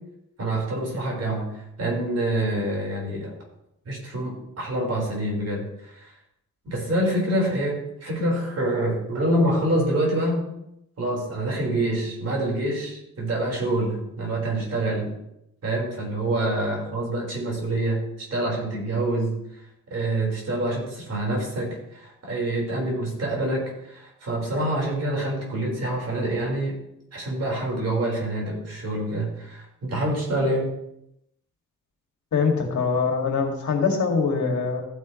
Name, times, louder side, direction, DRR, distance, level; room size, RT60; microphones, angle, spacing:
voice 1, 0.4-3.3 3.8-6.1 6.6-10.4 11.0-15.1 15.6-19.4 19.9-26.8 27.1-30.7, right 1 dB, 50° right, -2 dB, 4.7 m, -26 dB
voice 2, 32.3-34.8, left 5 dB, 60° left, 2 dB, 2.3 m, -23 dB
14.5 x 9.4 x 3.2 m, 0.82 s
wide cardioid pair, 130°, 32 cm